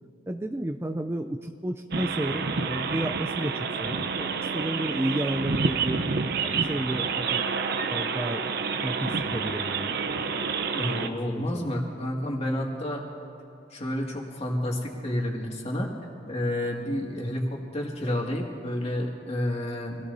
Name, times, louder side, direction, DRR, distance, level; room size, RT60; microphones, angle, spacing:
voice 1, 0.3-3.5 3.8-7.4 7.9-8.4 8.8-9.9 11.0-11.7, right 1 dB, 15° right, 6 dB, 0.4 m, -32 dB
sound 1, 1.9-11.1, right 5 dB, 60° right, 0.7 m, -29 dB
voice 2, 10.7-13.0 13.7-15.9 16.3-20.0, left 1 dB, 35° left, -1 dB, 2.1 m, -30 dB
26.5 x 17.0 x 2.7 m, 2.6 s
head